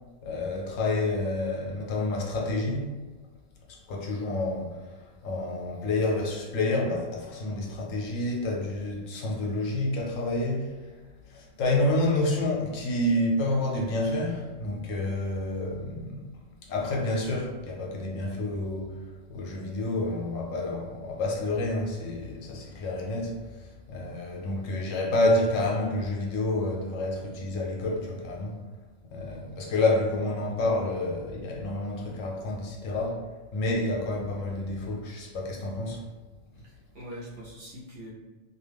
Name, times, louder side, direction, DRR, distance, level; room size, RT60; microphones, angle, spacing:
voice 1, 0.2-2.9 3.7-10.9 11.3-16.3 16.6-28.6 29.1-33.2 33.5-36.0, left 2 dB, 80° left, -1 dB, 1.0 m, -29 dB
voice 2, 36.6-38.1, equal, 55° right, -6 dB, 0.8 m, -43 dB
2.5 x 2.3 x 3.3 m, 1.2 s
omnidirectional pair, 1.3 m